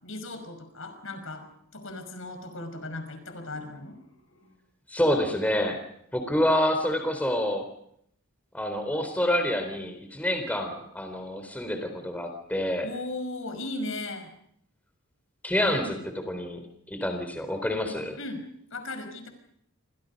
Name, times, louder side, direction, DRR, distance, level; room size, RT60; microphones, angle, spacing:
voice 1, 0.0-1.5 1.7-4.6 12.8-14.3 18.2-18.4 18.7-19.3, left 2 dB, 65° left, 7 dB, 5.5 m, -37 dB
voice 2, 4.9-5.8 6.1-7.6 8.5-12.9 15.4-16.6 16.9-18.2, left 1 dB, 5° left, 6 dB, 3.8 m, -27 dB
30.0 x 26.0 x 5.4 m, 0.70 s
head